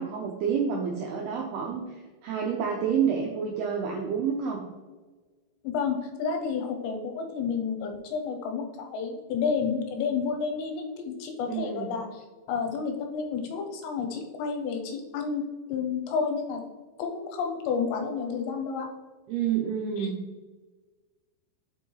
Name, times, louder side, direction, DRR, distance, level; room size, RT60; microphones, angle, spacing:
voice 1, 0.0-4.6 11.5-11.9 19.3-20.2, right 7 dB, 85° right, 0 dB, 2.2 m, -29 dB
voice 2, 5.6-15.4 15.7-16.6 17.0-18.9 20.0-20.1, left 5 dB, 85° left, 4 dB, 2.8 m, -30 dB
7.0 x 5.3 x 3.1 m, 1.3 s
omnidirectional pair, 5.3 m